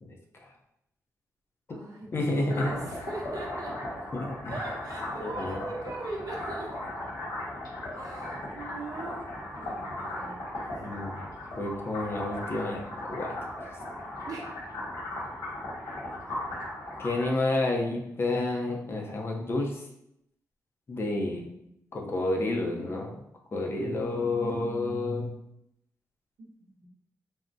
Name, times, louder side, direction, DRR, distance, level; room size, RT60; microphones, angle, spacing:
voice 1, 0.0-0.5 2.1-2.7 4.1-4.5 5.2-5.6 10.8-11.2 11.5-13.7 17.0-19.8 20.9-21.5 21.9-23.1 23.5-25.3, left 2 dB, 40° left, 0 dB, 0.5 m, -30 dB
voice 2, 1.7-3.8 4.5-6.7 8.0-10.3 14.3-14.5 26.8-26.9, right 2 dB, 70° right, -2 dB, 0.7 m, -40 dB
sound 1, 2.5-17.3, left 1 dB, 75° left, 1.4 m, -37 dB
3.5 x 2.0 x 2.6 m, 0.79 s
wide cardioid pair, 110°, 6 cm